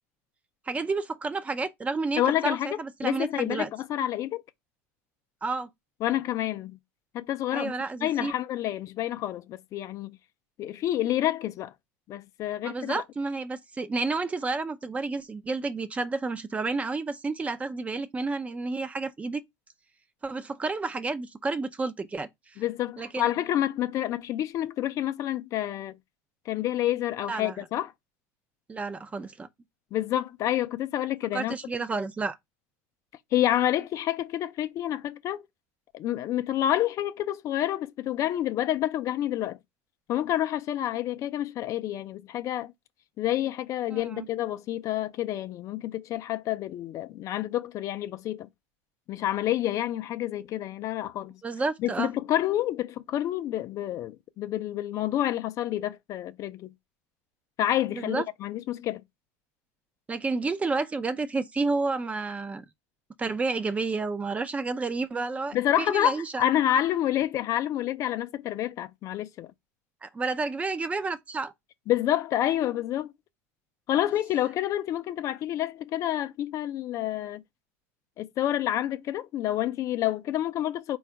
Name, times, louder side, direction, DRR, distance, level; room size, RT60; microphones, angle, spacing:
voice 1, 0.7-3.7 5.4-5.7 7.5-8.3 12.6-19.4 20.2-22.3 23.0-23.3 27.3-27.6 28.7-29.5 31.3-32.4 43.9-44.3 51.4-52.1 57.9-58.2 60.1-62.7 63.2-66.4 70.0-71.5, right 3 dB, 15° right, 0.5 m, -30 dB
voice 2, 2.2-4.4 6.0-6.8 7.1-7.7 8.0-10.2 10.6-11.7 12.1-13.0 22.6-26.0 26.5-27.9 29.9-31.5 33.3-35.4 35.9-39.6 40.1-42.7 43.2-48.5 49.1-51.4 51.8-56.7 57.6-59.0 65.5-69.5 71.9-73.1 73.9-77.4 78.2-81.0, left 12 dB, 45° left, 0.4 m, -28 dB
4.1 x 2.3 x 4.6 m
supercardioid pair, 105°, 8 cm